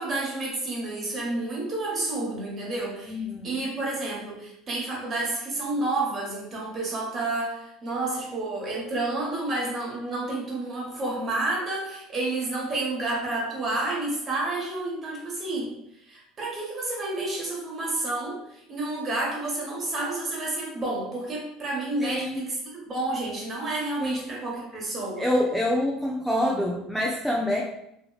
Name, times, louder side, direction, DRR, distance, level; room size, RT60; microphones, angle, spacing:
voice 1, 0.0-15.7 16.1-25.3, right 2 dB, 40° right, -3 dB, 1.2 m, -30 dB
voice 2, 3.0-3.5 22.0-22.4 24.0-24.2 25.2-27.6, left 1 dB, ahead, -3 dB, 0.5 m, -26 dB
2.8 x 2.8 x 2.3 m, 0.79 s
hypercardioid pair, 75°, 0 cm